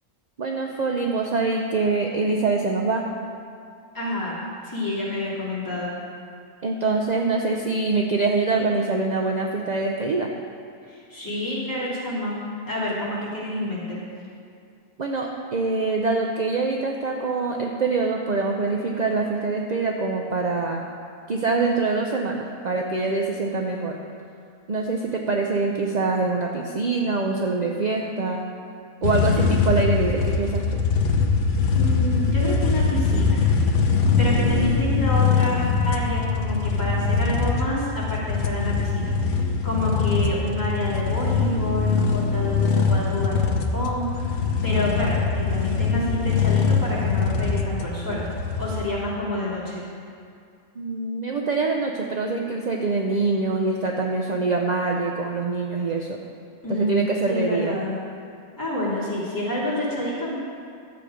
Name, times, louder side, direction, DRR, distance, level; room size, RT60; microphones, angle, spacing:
voice 1, 0.4-3.0 6.6-10.3 15.0-20.9 21.3-24.0 24.7-28.4 29.0-30.8 50.8-56.2 56.7-57.8, right 3 dB, 45° right, 1 dB, 0.5 m, -24 dB
voice 2, 3.9-6.0 10.9-12.4 12.7-14.0 31.7-33.4 34.2-44.3 44.6-48.2 48.6-49.8 56.6-57.0 57.3-58.0 58.6-60.3, left 1 dB, 15° left, -8 dB, 2.9 m, -28 dB
sound 1, 29.0-48.8, left 5 dB, 75° left, 1.3 m, -22 dB
12.5 x 7.9 x 5.1 m, 2.3 s
omnidirectional pair, 1.5 m